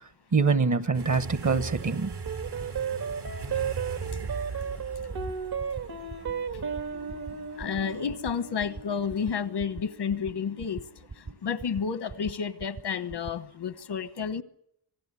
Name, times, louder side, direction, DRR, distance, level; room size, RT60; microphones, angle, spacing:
voice 1, 0.0-2.2 6.8-7.2 11.3-11.4, right 4 dB, 45° right, 1.2 m, -26 dB
sound 1, 0.9-9.5, right 4 dB, 85° right, 4.2 m, -40 dB
sound 2, 1.7-1.8 2.1-2.3 2.6-2.8 3.1-3.3 3.6-3.8 4.1-4.3 4.6-4.8 5.1-5.3 5.6-5.8 6.1-6.3 6.6-6.8 7.1-7.3 7.6-7.8 8.1-8.3 8.6-8.8 9.1-9.3 9.6-9.8 10.1-10.3 10.6-10.8 11.1-11.3 11.6-11.8 12.1-12.3 12.6-12.8 13.1-13.3, right 4 dB, 30° right, 0.8 m, -40 dB
sound 3, 2.3-10.9, right 6 dB, 65° right, 1.9 m, -35 dB
voice 2, 7.6-10.8 11.4-14.4, left 6 dB, 90° left, 1.3 m, -30 dB
26.0 x 18.0 x 8.4 m
wide cardioid pair, 140°, 40 cm